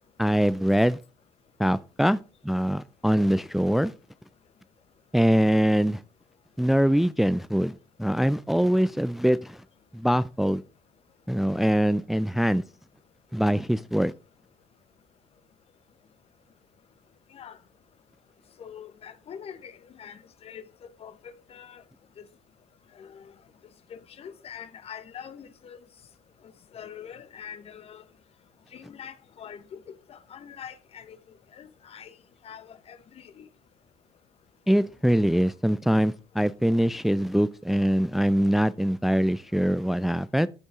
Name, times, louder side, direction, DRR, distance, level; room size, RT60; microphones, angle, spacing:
voice 1, 0.2-1.0 1.6-2.2 2.4-3.9 5.1-6.0 6.6-9.6 9.9-10.6 11.3-12.6 13.3-14.1 34.7-40.5, equal, ahead, 0.4 m, -23 dB
voice 2, 18.6-19.7 20.0-20.6 21.0-21.8 23.0-23.2 23.9-25.8 26.7-28.0 28.7-29.8 30.1-31.2 31.5-32.1 32.4-33.5, left 8 dB, 45° left, 1.3 m, -44 dB
14.0 x 5.3 x 3.7 m
hypercardioid pair, 60°, 14 cm